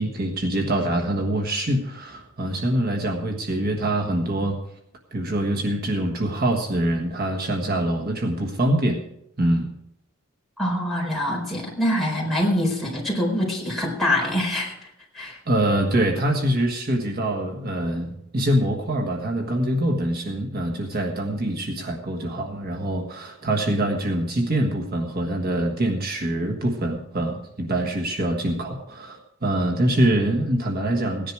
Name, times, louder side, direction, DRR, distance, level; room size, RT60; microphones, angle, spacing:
voice 1, 0.0-4.6 5.1-9.0 9.4-9.7 15.5-31.3, right 1 dB, 50° right, 2 dB, 1.5 m, -24 dB
voice 2, 10.6-14.9 15.1-15.4, left 1 dB, ahead, -4 dB, 4.4 m, -24 dB
17.0 x 10.5 x 4.7 m, 0.78 s
head